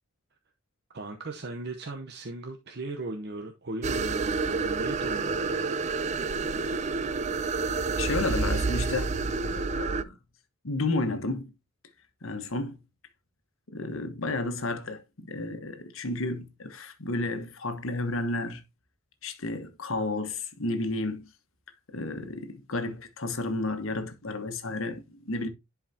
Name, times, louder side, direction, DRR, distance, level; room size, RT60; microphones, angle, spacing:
voice 1, 0.9-5.7, right 2 dB, 50° right, 0.8 m, -37 dB
sound 1, 3.8-10.0, right 4 dB, 35° right, 0.4 m, -29 dB
voice 2, 8.0-10.2 10.6-11.5 12.2-12.8 13.7-18.6 19.2-21.3 21.9-25.5, left 2 dB, 75° left, 1.2 m, -32 dB
10.5 x 4.7 x 2.7 m
head